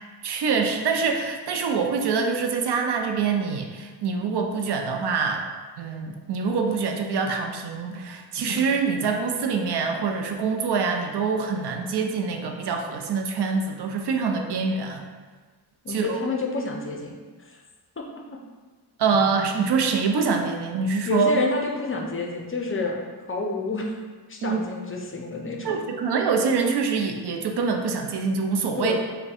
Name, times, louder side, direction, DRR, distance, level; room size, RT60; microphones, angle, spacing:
voice 1, 0.2-5.4 5.8-15.1 15.9-16.2 19.0-21.3 24.4-24.6 25.6-28.9, right 5 dB, 70° right, 4 dB, 0.5 m, -25 dB
voice 2, 15.8-17.2 17.4-17.6 18.0-18.1 21.1-23.0 23.3-24.0 24.3-25.8 28.7-29.0, left 3 dB, 30° left, 0 dB, 0.4 m, -28 dB
3.4 x 2.2 x 4.1 m, 1.4 s
wide cardioid pair, 100°, 41 cm